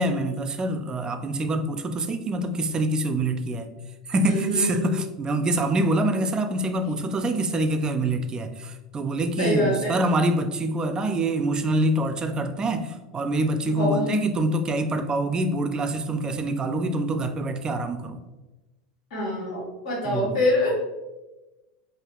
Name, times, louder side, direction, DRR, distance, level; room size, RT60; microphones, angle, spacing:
voice 1, 0.0-3.7 4.1-18.2 20.0-20.4, right 1 dB, 25° right, 8 dB, 0.3 m, -25 dB
voice 2, 4.2-4.9 9.4-9.9 13.6-14.1 19.1-20.7, left 1 dB, 75° left, -5 dB, 1.0 m, -25 dB
3.3 x 2.4 x 2.3 m, 1.1 s
hypercardioid pair, 100°, 3 cm